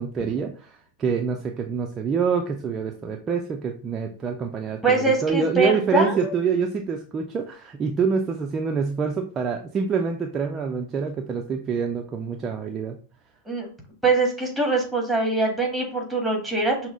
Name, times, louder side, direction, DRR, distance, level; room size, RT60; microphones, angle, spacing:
voice 1, 0.0-13.0, right 5 dB, 25° right, 3 dB, 0.5 m, -26 dB
voice 2, 4.8-6.2 13.5-13.7 14.0-16.9, right 3 dB, ahead, 0 dB, 1.5 m, -23 dB
5.9 x 2.1 x 3.8 m, 0.41 s
figure-of-eight pair, 90°, 0 cm